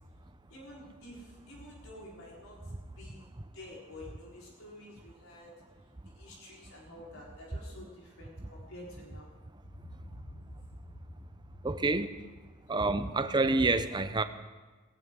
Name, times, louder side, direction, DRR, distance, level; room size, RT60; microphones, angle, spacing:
voice 1, 0.5-2.6 3.0-3.2 3.5-5.5 6.2-9.3 9.6-11.2 12.7-12.8, left 1 dB, 70° left, -4 dB, 4.2 m, -49 dB
voice 2, 11.6-12.1 12.7-14.2, right 3 dB, 20° right, 10 dB, 0.6 m, -28 dB
18.0 x 17.5 x 3.8 m, 1.3 s
head